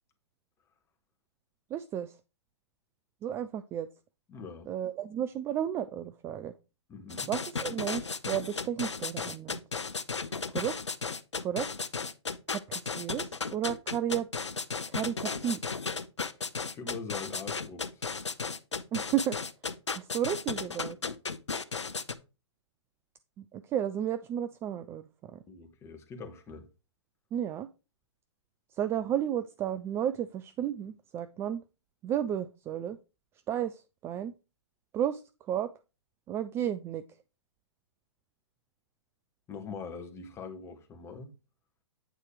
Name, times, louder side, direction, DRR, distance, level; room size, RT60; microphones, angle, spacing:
voice 1, 1.7-2.2 3.2-3.9 4.7-6.5 7.3-9.6 10.5-10.7 11.4-11.7 12.5-14.3 14.9-15.6 18.9-19.3 19.9-21.0 23.4-25.4 27.3-27.7 28.8-31.6 32.0-33.0 33.5-34.3 34.9-35.2 35.5-35.7 36.3-37.0, right 10 dB, 15° right, 0.4 m, -33 dB
voice 2, 4.3-4.7 6.9-7.3 10.2-10.4 16.7-18.4 25.5-26.7 39.5-41.3, left 5 dB, 20° left, 1.5 m, -43 dB
sound 1, 7.1-22.1, left 4 dB, 85° left, 0.8 m, -34 dB
8.9 x 4.4 x 4.8 m
figure-of-eight pair, 120°, 15 cm